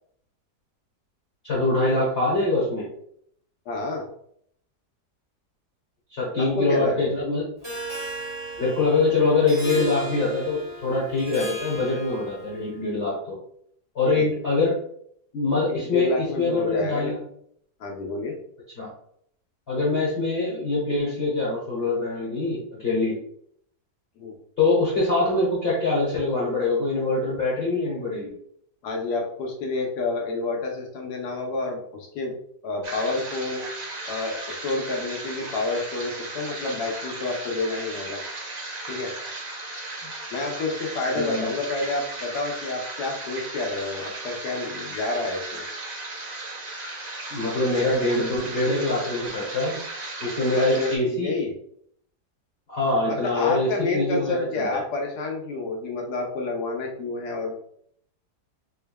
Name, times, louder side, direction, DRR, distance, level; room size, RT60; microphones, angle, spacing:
voice 1, 1.4-2.9 6.1-7.5 8.6-13.4 13.9-14.8 15.3-17.2 18.8-18.9 19.7-23.2 24.6-28.3 41.1-41.5 47.3-49.8 50.2-51.3 52.7-54.8, left 2 dB, 40° left, -6 dB, 1.3 m, -24 dB
voice 2, 3.7-4.1 6.4-7.0 14.1-14.3 15.7-17.1 17.8-18.4 24.2-24.3 28.8-32.4 32.6-33.6 34.1-38.2 38.9-39.1 40.3-45.7 50.5-51.5 53.1-57.5, left 3 dB, 75° left, 1 dB, 1.3 m, -29 dB
Harp, 7.6-12.6, right 1 dB, 25° right, 1.4 m, -36 dB
sound 1, 32.8-51.0, right 2 dB, 40° right, 0.6 m, -36 dB
3.7 x 3.4 x 2.2 m, 0.66 s
omnidirectional pair, 1.8 m